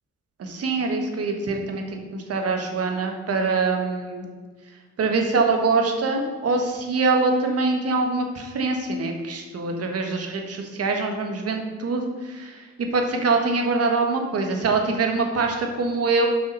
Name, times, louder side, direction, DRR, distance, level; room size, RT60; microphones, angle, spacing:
voice 1, 0.4-4.3 5.0-12.7 12.9-16.3, right 3 dB, 50° right, 3 dB, 1.5 m, -24 dB
6.5 x 5.6 x 5.3 m, 1.5 s
cardioid pair, 90°, 30 cm